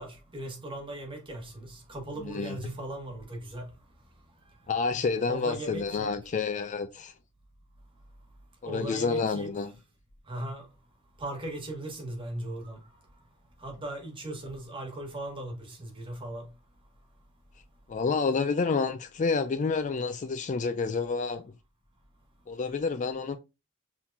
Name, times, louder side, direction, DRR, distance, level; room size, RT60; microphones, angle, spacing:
voice 1, 0.0-3.7 5.3-6.1 8.6-9.5 10.3-10.7 11.2-12.8 13.6-16.5, right 1 dB, 25° right, 1.4 m, -38 dB
voice 2, 2.2-2.6 4.7-7.1 8.6-9.7 17.9-21.5 22.5-23.4, left 4 dB, 35° left, 0.4 m, -29 dB
4.5 x 3.7 x 2.7 m
head